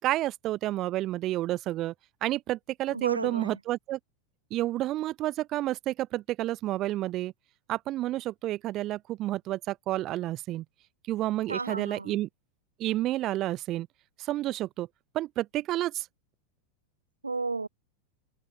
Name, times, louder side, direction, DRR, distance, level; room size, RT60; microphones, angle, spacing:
voice 1, 0.0-1.9 2.2-4.0 4.5-7.3 7.7-10.6 11.1-12.3 12.8-13.9 14.2-14.9 15.1-16.1, right 15 dB, 35° right, 4.1 m, -30 dB
voice 2, 2.9-3.6 11.5-12.2 17.2-17.7, right 3 dB, 80° right, 4.1 m, -33 dB
figure-of-eight pair, 90°, 0 cm